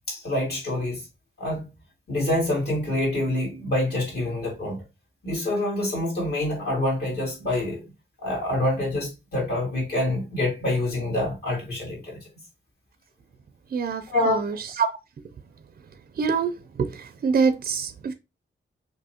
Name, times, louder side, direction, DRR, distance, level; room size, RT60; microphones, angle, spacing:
voice 1, 0.1-1.0 1.4-1.7 2.1-4.8 5.2-7.8 8.2-12.2 14.1-14.5, left 1 dB, 55° left, 2.8 m, -26 dB
voice 2, 13.7-14.9 16.2-16.5 16.8-18.1, right 5 dB, 50° right, 0.4 m, -25 dB
6.1 x 2.6 x 2.8 m
wide cardioid pair, 170°, 20 cm